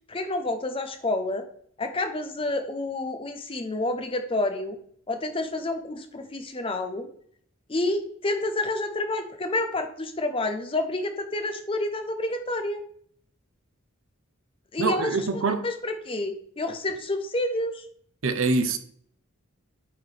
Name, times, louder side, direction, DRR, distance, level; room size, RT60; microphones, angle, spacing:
voice 1, 0.1-1.4 1.8-4.8 5.1-7.1 7.7-12.8 14.7-15.1 15.6-17.8, left 2 dB, 25° left, 0.7 m, -29 dB
voice 2, 14.8-15.7 18.2-18.8, right 3 dB, 65° right, 0.7 m, -24 dB
8.6 x 4.4 x 3.3 m
head